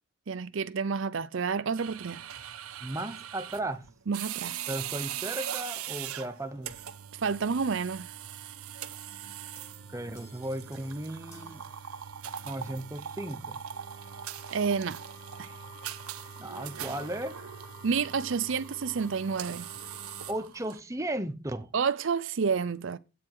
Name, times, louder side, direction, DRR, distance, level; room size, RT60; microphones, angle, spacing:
voice 1, 0.3-2.2 4.1-4.6 7.2-8.1 14.5-15.0 15.4-15.6 17.8-19.7 21.7-23.0, right 5 dB, 60° right, 0.5 m, -29 dB
sound 1, 1.8-20.8, right 10 dB, 90° right, 0.8 m, -41 dB
voice 2, 2.8-3.9 4.7-6.8 9.9-11.6 12.4-13.6 16.4-17.4 20.3-21.7, right 1 dB, 15° right, 0.8 m, -35 dB
sound 2, 9.6-12.5, left 1 dB, 15° left, 2.0 m, -58 dB
Wind instrument woodwind instrument, 13.7-20.4, left 4 dB, 60° left, 1.3 m, -53 dB
11.5 x 8.7 x 4.6 m
head